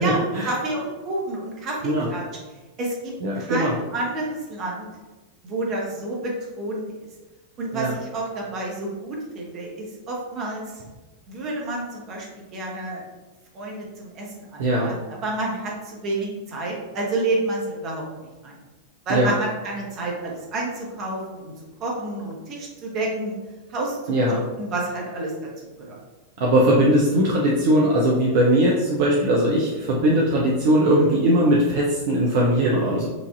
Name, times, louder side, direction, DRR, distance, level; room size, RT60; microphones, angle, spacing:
voice 1, 0.0-2.2 2.8-4.9 5.4-7.1 7.6-10.8 11.3-13.0 13.5-18.0 18.4-18.5 19.1-21.5 21.8-23.3 23.7-25.3 25.8-26.0, right 2 dB, 35° right, -2 dB, 1.0 m, -29 dB
voice 2, 3.2-3.7 7.7-7.9 14.6-14.9 19.1-19.3 24.1-24.4 26.4-33.1, right 1 dB, 50° right, -3 dB, 0.5 m, -20 dB
4.8 x 2.6 x 2.5 m, 1.2 s
figure-of-eight pair, 90°, 0 cm